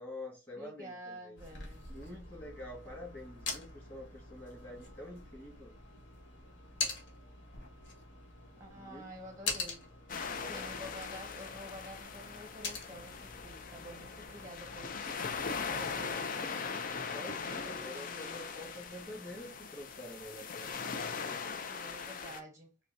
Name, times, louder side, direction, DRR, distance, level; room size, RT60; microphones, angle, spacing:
voice 1, 0.0-1.4 1.9-5.7 8.8-9.1 10.2-10.9 17.1-20.8, left 1 dB, 10° left, 1.6 m, -47 dB
voice 2, 0.6-1.9 8.6-9.8 10.5-15.0 15.4-16.9 17.4-18.5 21.6-22.7, equal, 15° right, 0.8 m, -49 dB
sound 1, 1.4-16.1, left 3 dB, 60° left, 1.6 m, -44 dB
sound 2, 10.1-22.4, left 5 dB, 40° left, 0.5 m, -40 dB
5.4 x 2.2 x 2.6 m
head